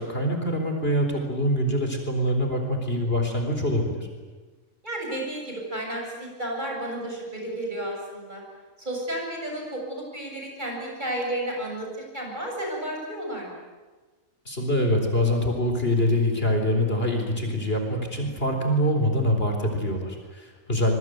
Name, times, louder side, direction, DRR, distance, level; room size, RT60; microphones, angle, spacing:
voice 1, 0.0-4.1 14.5-20.9, equal, 45° left, 4 dB, 4.2 m, -24 dB
voice 2, 4.8-8.4 8.8-13.6, right 1 dB, 35° right, 0 dB, 7.8 m, -32 dB
25.0 x 23.5 x 9.3 m, 1.3 s
omnidirectional pair, 1.4 m